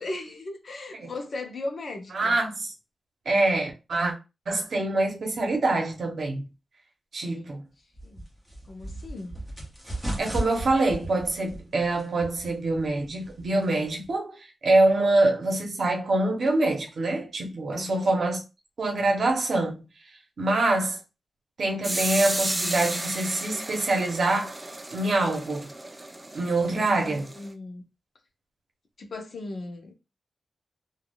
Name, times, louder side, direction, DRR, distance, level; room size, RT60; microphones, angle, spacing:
voice 1, 0.0-2.4 7.2-7.5 8.0-8.3 8.7-9.4 17.7-18.1 26.9-27.8 29.0-29.9, left 2 dB, 50° left, 0.7 m, -37 dB
voice 2, 2.1-2.7 3.3-4.1 4.5-6.4 7.1-7.6 10.2-18.4 18.8-19.8 20.4-21.0 21.6-24.6 24.9-25.7 26.3-27.3, right 2 dB, 55° right, 0.8 m, -25 dB
sound 1, 7.9-14.1, right 1 dB, 5° left, 0.8 m, -37 dB
sound 2, 21.8-27.5, right 1 dB, 15° right, 0.3 m, -33 dB
3.4 x 2.3 x 2.3 m
wide cardioid pair, 170°, 0 cm